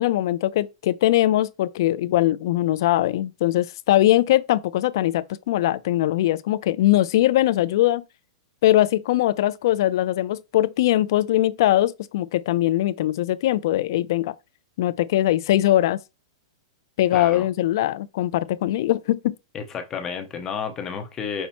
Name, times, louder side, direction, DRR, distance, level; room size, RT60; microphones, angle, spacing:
voice 1, 0.0-8.0 8.6-14.3 14.8-16.0 17.0-19.3, left 14 dB, 50° left, 0.3 m, -21 dB
voice 2, 17.1-17.5 19.5-21.5, left 6 dB, 15° left, 0.7 m, -31 dB
5.5 x 2.0 x 4.3 m
supercardioid pair, 165°, 3 cm